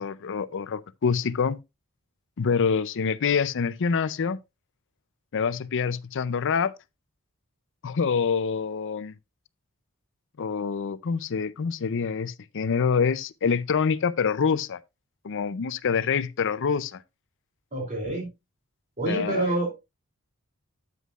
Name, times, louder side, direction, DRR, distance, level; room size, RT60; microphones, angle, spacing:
voice 1, 0.0-1.6 2.4-4.4 5.3-6.7 7.8-9.1 10.4-14.8 15.2-17.0 19.1-19.5, left 6 dB, 55° left, 0.5 m, -26 dB
voice 2, 17.7-18.3 19.0-19.7, right 2 dB, 35° right, 2.9 m, -27 dB
9.4 x 8.2 x 2.4 m
head